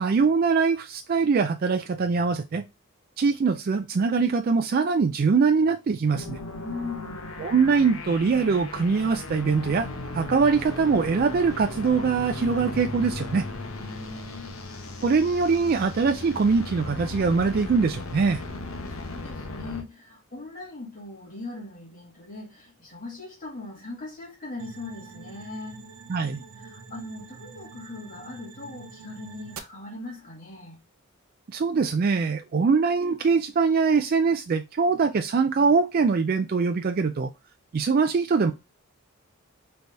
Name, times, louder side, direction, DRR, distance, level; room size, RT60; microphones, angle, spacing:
voice 1, 0.0-2.6 3.2-6.4 7.4-9.9 10.1-13.4 15.0-18.4 26.1-26.4 31.5-37.3 37.7-38.5, right 5 dB, 45° right, 0.3 m, -23 dB
sound 1, 6.1-19.8, left 2 dB, 70° left, 1.0 m, -36 dB
voice 2, 6.6-7.4 13.7-14.6 18.4-25.8 26.6-30.8, left 2 dB, 40° left, 2.0 m, -40 dB
sound 2, 24.6-29.6, right 5 dB, 85° right, 0.7 m, -45 dB
4.0 x 3.4 x 3.3 m
head